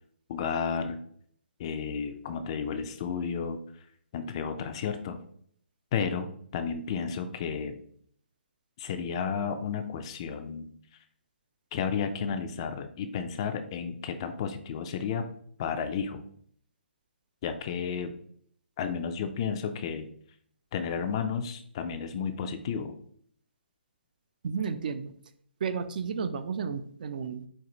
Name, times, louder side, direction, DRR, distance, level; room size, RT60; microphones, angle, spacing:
voice 1, 0.3-1.0 1.6-3.6 4.1-5.2 5.9-7.8 8.8-10.7 11.7-15.2 15.6-16.2 17.4-18.1 18.8-20.1 20.7-23.0, left 6 dB, 25° left, 8 dB, 0.3 m, -32 dB
voice 2, 24.4-25.1 25.6-27.5, right 6 dB, 45° right, 11 dB, 0.4 m, -32 dB
4.5 x 2.4 x 3.8 m, 0.62 s
hypercardioid pair, 160°, 6 cm